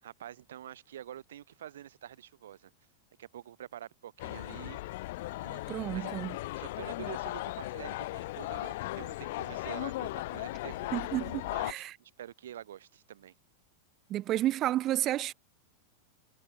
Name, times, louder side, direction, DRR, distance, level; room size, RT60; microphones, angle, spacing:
voice 1, 0.0-2.7 3.2-4.8 5.4-6.2 6.5-10.9 11.5-13.3, right 11 dB, 60° right, 6.6 m, -47 dB
sound 1, 4.2-11.7, left 18 dB, 50° left, 2.3 m, -37 dB
voice 2, 5.7-6.4 10.9-12.0 14.1-15.3, right 14 dB, 35° right, 0.5 m, -31 dB
figure-of-eight pair, 90°, 0 cm